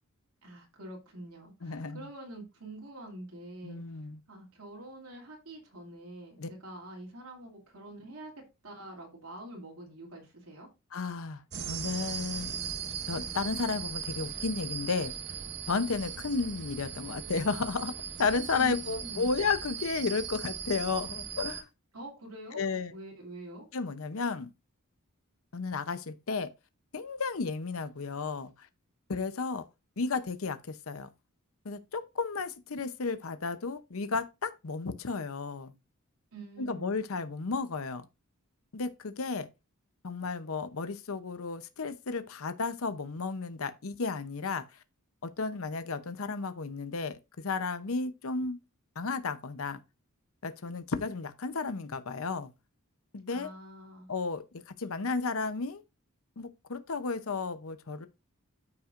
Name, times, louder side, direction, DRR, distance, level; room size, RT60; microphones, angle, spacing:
voice 1, 0.4-3.8 4.3-8.3 8.6-10.7 18.6-19.3 21.9-23.7 36.3-36.9 53.3-54.1, right 1 dB, 80° right, 2.6 m, -46 dB
voice 2, 1.6-2.0 3.6-4.2 6.4-6.5 10.9-11.4 11.7-12.5 13.1-15.1 15.7-17.9 18.2-21.7 22.5-22.9 23.7-24.5 25.5-26.5 26.9-28.5 29.1-29.6 30.0-31.1 31.6-35.7 36.6-38.1 38.7-39.5 40.0-44.6 45.2-48.6 49.0-49.8 50.4-52.5 53.1-53.5 54.1-54.4 54.8-55.8 56.4-58.1, left 4 dB, 70° left, 0.7 m, -33 dB
sound 1, 11.5-21.6, right 7 dB, 50° right, 0.8 m, -38 dB
13.0 x 5.8 x 2.5 m
head